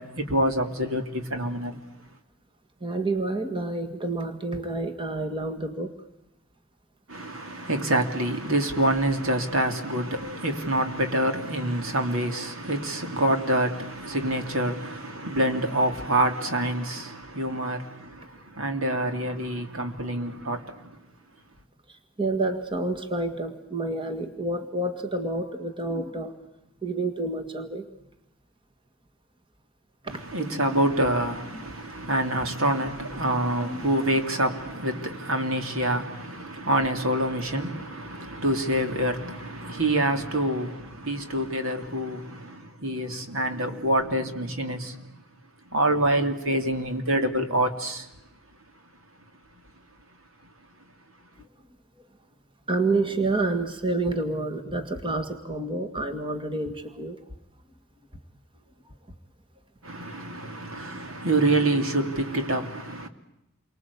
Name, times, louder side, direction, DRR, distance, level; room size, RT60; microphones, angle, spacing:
voice 1, 0.0-1.8 7.1-20.9 30.1-45.1 45.7-48.1 59.8-63.1, right 1 dB, 65° right, 3.0 m, -26 dB
voice 2, 2.8-6.0 19.0-19.1 21.9-26.4 26.8-27.9 30.0-30.2 30.5-31.1 33.6-33.8 52.7-57.2, right 2 dB, 25° right, 2.0 m, -29 dB
29.0 x 24.5 x 8.4 m
head